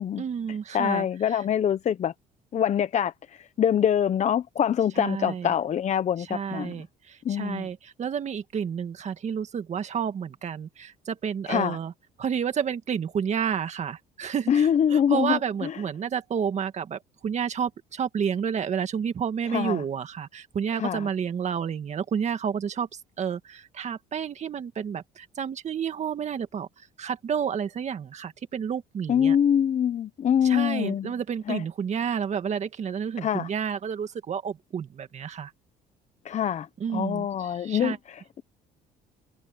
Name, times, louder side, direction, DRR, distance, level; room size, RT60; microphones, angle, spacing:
voice 1, 0.2-1.1 1.3-1.4 5.0-5.5 6.2-11.9 12.2-29.4 30.4-35.5 36.8-38.0, right 7 dB, 45° right, 2.0 m, -30 dB
voice 2, 0.7-2.1 2.5-6.7 7.2-7.7 11.5-11.8 14.5-15.8 19.5-19.8 20.7-21.1 29.1-31.1 31.5-31.6 33.2-33.5 36.2-38.4, left 9 dB, 45° left, 0.9 m, -25 dB
cardioid pair, 110°, 17 cm